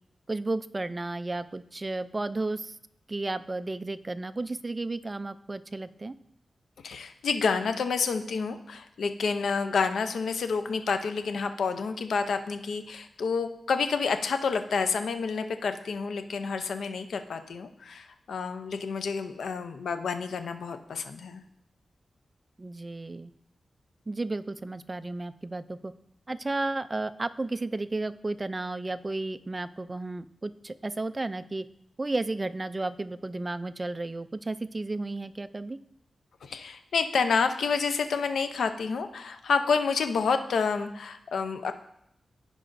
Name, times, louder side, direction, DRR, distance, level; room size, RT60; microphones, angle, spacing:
voice 1, 0.3-2.8 3.1-6.1 22.6-23.3 24.1-25.9 26.3-31.6 32.0-35.8, right 2 dB, 30° right, 12 dB, 0.3 m, -33 dB
voice 2, 6.8-21.4 36.4-41.7, left 5 dB, 90° left, 8 dB, 0.5 m, -29 dB
14.5 x 4.9 x 2.6 m, 0.77 s
cardioid pair, 80°, 0 cm